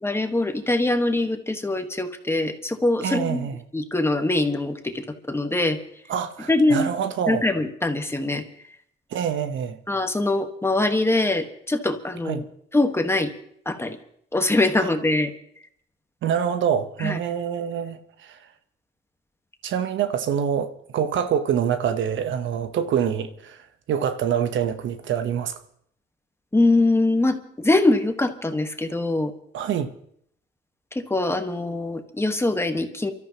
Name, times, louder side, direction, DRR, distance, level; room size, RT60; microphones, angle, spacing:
voice 1, 0.0-5.8 6.5-6.9 7.3-8.4 9.9-12.4 12.7-13.3 13.6-14.0 14.3-15.3 17.0-17.2 26.5-29.3 30.9-33.1, left 2 dB, 10° left, 1.4 m, -23 dB
voice 2, 3.0-3.6 6.1-7.4 9.1-9.8 12.2-12.4 14.8-14.9 16.2-18.4 19.6-25.5 29.5-29.9, right 8 dB, 70° right, 1.1 m, -26 dB
29.5 x 13.0 x 3.0 m
cardioid pair, 90°, 20 cm